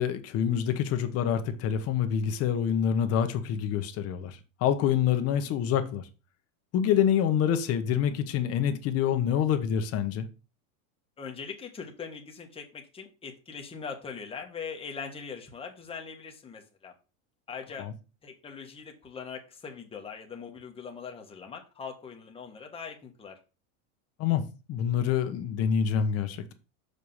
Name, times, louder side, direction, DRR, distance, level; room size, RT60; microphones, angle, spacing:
voice 1, 0.0-6.1 6.7-10.3 17.8-17.9 24.2-26.5, left 8 dB, 35° left, 1.1 m, -26 dB
voice 2, 11.2-16.9 17.5-17.9 18.2-23.4, left 6 dB, 15° left, 1.4 m, -41 dB
6.7 x 5.0 x 5.5 m
supercardioid pair, 150°, 42 cm